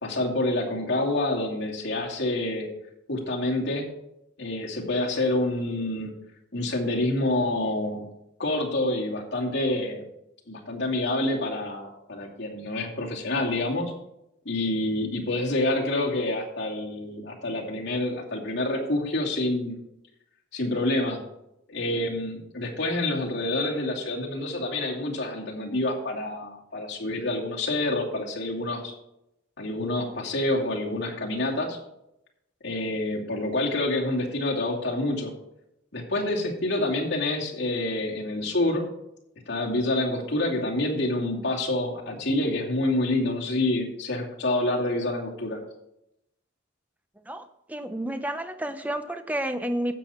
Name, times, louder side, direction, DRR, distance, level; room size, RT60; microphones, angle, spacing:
voice 1, 0.0-2.7 3.1-3.8 4.4-6.1 6.5-8.0 8.4-10.0 10.5-13.9 14.4-19.8 20.5-21.2 21.7-28.9 29.6-31.8 32.6-35.3 35.9-38.9 39.5-45.6, left 2 dB, 55° left, -2 dB, 2.7 m, -27 dB
voice 2, 47.3-49.9, right 1 dB, 10° right, 8 dB, 0.6 m, -31 dB
12.5 x 8.4 x 4.3 m, 0.83 s
head